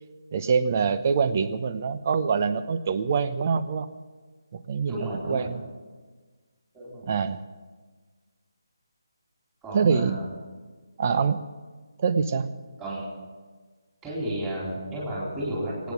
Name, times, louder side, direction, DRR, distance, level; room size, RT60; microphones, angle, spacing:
voice 1, 0.3-3.9 4.5-5.6 7.0-7.4 9.7-10.2 11.0-11.4 12.0-12.5, right 5 dB, 35° right, 12 dB, 0.9 m, -25 dB
voice 2, 4.9-5.5 6.7-7.1 9.6-10.3 12.8-13.0 14.0-15.9, right 1 dB, 10° right, -7 dB, 4.3 m, -32 dB
24.0 x 9.5 x 6.2 m, 1.4 s
figure-of-eight pair, 155°, 2 cm